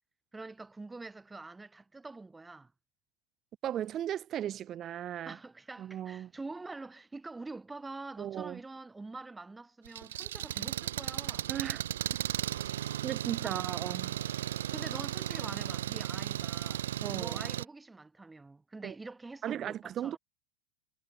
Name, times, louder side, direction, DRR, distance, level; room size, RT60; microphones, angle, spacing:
voice 1, 0.3-2.7 5.2-11.6 13.4-13.6 14.7-16.9 17.1-20.2, right 3 dB, 10° right, 6.7 m, -45 dB
voice 2, 3.6-5.4 5.8-6.3 8.2-8.6 11.5-11.8 13.0-14.2 17.0-17.4 18.8-18.9 19.4-20.2, right 11 dB, 35° right, 0.6 m, -36 dB
Engine, 9.9-17.6, right 12 dB, 80° right, 2.8 m, -35 dB
hypercardioid pair, 105°, 0 cm